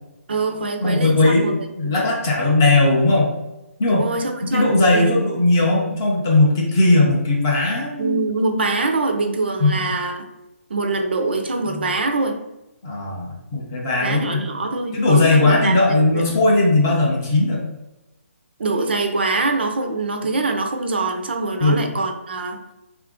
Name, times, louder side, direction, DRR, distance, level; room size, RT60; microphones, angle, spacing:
voice 1, 0.3-1.5 3.9-5.1 8.0-10.3 10.7-12.4 14.0-16.2 18.6-22.6, right 3 dB, 45° right, 4 dB, 0.5 m, -24 dB
voice 2, 0.8-3.3 3.8-4.0 4.4-8.2 9.6-9.8 12.8-14.4 14.9-17.6 21.6-21.8, left 2 dB, 15° left, -3 dB, 0.4 m, -18 dB
3.6 x 2.5 x 3.5 m, 0.95 s
hypercardioid pair, 175°, 8 cm